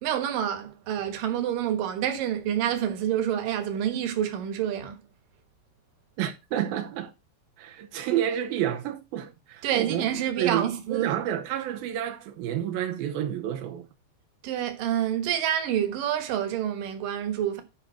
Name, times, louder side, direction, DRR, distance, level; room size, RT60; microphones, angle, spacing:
voice 1, 0.0-5.0 9.6-11.1 14.4-17.6, right 10 dB, 65° right, 2.4 m, -27 dB
voice 2, 6.2-7.1 7.6-10.1 10.4-13.9, right 11 dB, 85° right, 2.1 m, -30 dB
10.5 x 5.3 x 4.5 m
omnidirectional pair, 5.4 m